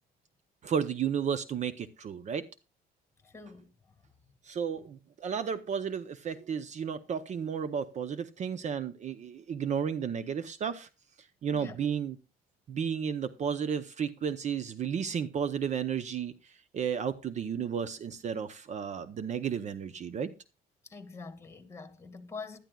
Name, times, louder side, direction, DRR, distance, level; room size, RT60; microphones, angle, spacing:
voice 1, 0.6-2.5 4.5-10.9 11.4-12.2 12.7-20.3, right 7 dB, 45° right, 0.7 m, -33 dB
voice 2, 3.2-4.0 11.5-11.8 20.8-22.6, left 4 dB, 15° left, 2.1 m, -45 dB
16.5 x 11.5 x 2.3 m
cardioid pair, 110°, 17 cm